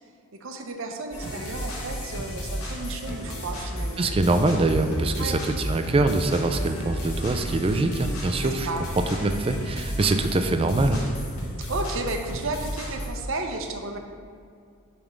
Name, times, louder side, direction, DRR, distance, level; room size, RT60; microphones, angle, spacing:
voice 1, 0.4-4.0 5.2-5.3 8.4-8.9 11.6-14.0, right 2 dB, 60° right, 4 dB, 0.6 m, -33 dB
sound 1, 1.1-13.1, equal, 70° left, 1.5 m, -33 dB
voice 2, 4.0-8.7 9.2-11.0, right 2 dB, 25° right, 7 dB, 0.3 m, -24 dB
7.1 x 3.4 x 5.1 m, 2.3 s
head